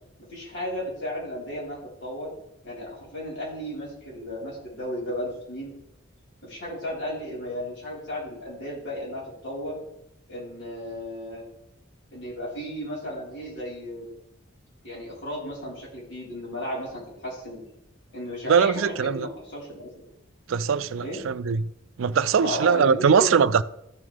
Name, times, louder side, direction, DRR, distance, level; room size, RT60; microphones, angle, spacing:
voice 1, 0.3-2.3 2.6-5.7 6.4-9.8 10.3-11.4 12.1-14.1 14.8-17.6 18.1-20.0 21.0-21.2 22.4-23.4, equal, 60° left, 4.4 m, -34 dB
voice 2, 18.5-19.3 20.5-21.7 22.0-23.6, right 6 dB, 80° right, 0.4 m, -21 dB
13.0 x 7.3 x 3.4 m
head